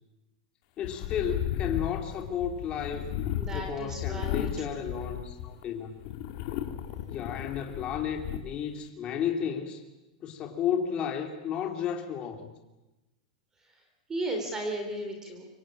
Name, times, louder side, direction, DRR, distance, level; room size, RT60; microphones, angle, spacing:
sound 1, 0.8-5.6 6.0-8.4, left 12 dB, 45° left, 2.4 m, -34 dB
voice 1, 0.8-3.2 3.5-5.9 7.1-9.8 10.2-12.5, left 8 dB, 25° left, 3 dB, 2.8 m, -33 dB
voice 2, 3.4-4.5 14.1-15.5, right 1 dB, 15° right, 4 dB, 3.5 m, -34 dB
26.0 x 25.0 x 8.8 m, 1.0 s
supercardioid pair, 160°, 4 cm